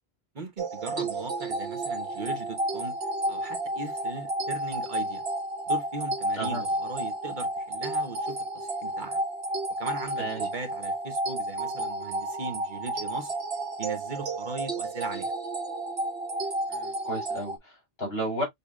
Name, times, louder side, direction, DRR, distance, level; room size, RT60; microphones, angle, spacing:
voice 1, 0.3-2.9 3.3-5.2 5.7-9.2 9.8-13.3 13.8-15.3, right 3 dB, 50° right, 1.1 m, -38 dB
sound 1, 0.6-17.6, right 2 dB, 70° right, 1.1 m, -31 dB
voice 2, 16.7-18.4, right 1 dB, 70° left, 3.3 m, -33 dB
6.7 x 2.9 x 2.3 m
omnidirectional pair, 1.0 m